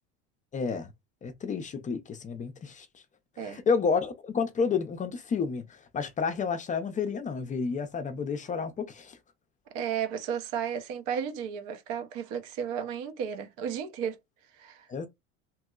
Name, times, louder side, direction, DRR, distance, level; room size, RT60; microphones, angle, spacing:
voice 1, 0.5-0.9 1.2-3.0 3.4-9.2 14.9-15.1, left 5 dB, 25° left, 0.4 m, -30 dB
voice 2, 9.7-14.2 14.5-14.9, right 8 dB, 70° right, 0.7 m, -33 dB
3.0 x 2.7 x 2.3 m
supercardioid pair, 105°, 32 cm